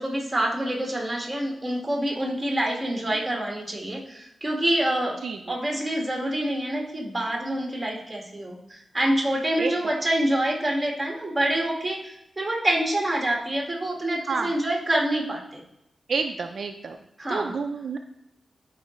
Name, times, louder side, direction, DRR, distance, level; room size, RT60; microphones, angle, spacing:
voice 1, 0.0-5.2 5.5-15.6 17.2-17.5, right 1 dB, 15° right, -1 dB, 1.7 m, -26 dB
voice 2, 5.2-5.6 9.6-9.7 14.3-14.5 16.1-17.0 17.3-18.0, right 4 dB, 65° right, 5 dB, 0.5 m, -29 dB
12.0 x 4.8 x 3.1 m, 0.82 s
wide cardioid pair, 135°, 0 cm